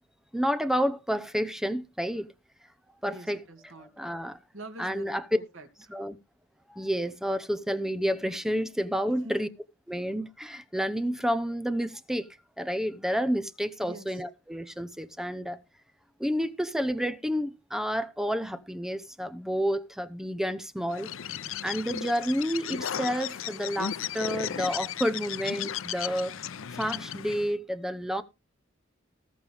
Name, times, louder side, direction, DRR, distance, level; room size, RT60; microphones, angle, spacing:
voice 1, 0.3-2.3 3.0-3.4 4.0-4.4 4.8-5.2 5.9-6.2 6.7-9.5 9.9-15.6 16.2-21.1 21.6-26.3 26.7-28.2, equal, ahead, 0.9 m, -30 dB
voice 2, 3.1-4.0 4.5-6.0 9.1-9.4 13.8-14.2 28.0-28.1, right 1 dB, 80° right, 2.8 m, -46 dB
Bird, 20.9-27.5, left 9 dB, 85° left, 0.6 m, -35 dB
20.0 x 6.8 x 3.5 m
head